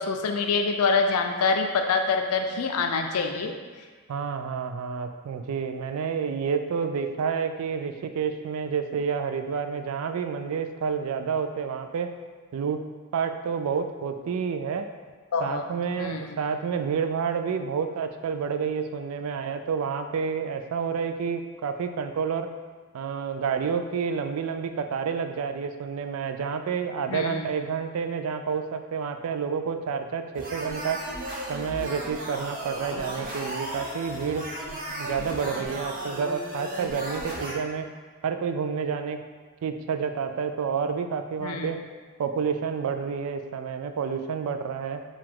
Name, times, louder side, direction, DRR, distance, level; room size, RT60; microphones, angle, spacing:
voice 1, 0.0-3.5 15.3-15.6 16.0-16.4 27.1-27.4 41.4-41.8, left 4 dB, 80° left, 4 dB, 0.4 m, -25 dB
voice 2, 4.1-12.2 12.5-12.9 13.1-14.9 15.4-22.5 22.9-31.0 31.5-37.9 38.2-39.2 39.6-41.8 42.2-45.1, right 6 dB, 75° right, 7 dB, 0.3 m, -29 dB
sound 1, 30.3-37.5, right 1 dB, 40° right, 0.7 m, -35 dB
4.7 x 2.4 x 3.7 m, 1.5 s
head